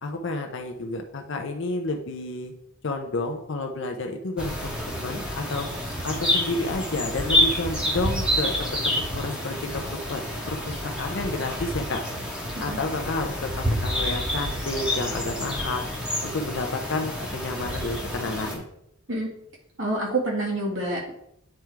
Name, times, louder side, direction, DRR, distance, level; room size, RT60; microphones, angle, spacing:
voice 1, 0.0-2.5 2.8-5.7 6.0-10.2 10.5-12.0 12.6-15.9 16.2-18.7, left 2 dB, 55° left, 4 dB, 0.7 m, -30 dB
sound 1, 4.4-18.5, left 1 dB, 5° right, 1.1 m, -28 dB
voice 2, 19.8-21.1, right 2 dB, 60° right, -2 dB, 2.1 m, -27 dB
8.9 x 3.6 x 4.5 m, 0.78 s
head